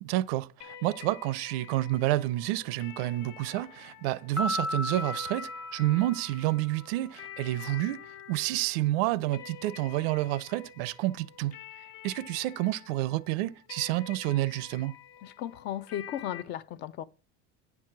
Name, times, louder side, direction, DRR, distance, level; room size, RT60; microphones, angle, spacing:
voice 1, 0.0-11.5 12.0-15.0, right 16 dB, 75° right, 0.5 m, -29 dB
sound 1, 0.6-16.4, left 10 dB, 55° left, 0.9 m, -49 dB
Piano, 4.4-6.9, left 1 dB, 5° left, 0.7 m, -35 dB
voice 2, 15.2-17.0, left 11 dB, 35° left, 0.4 m, -36 dB
9.7 x 4.7 x 5.9 m
cardioid pair, 170°, 30 cm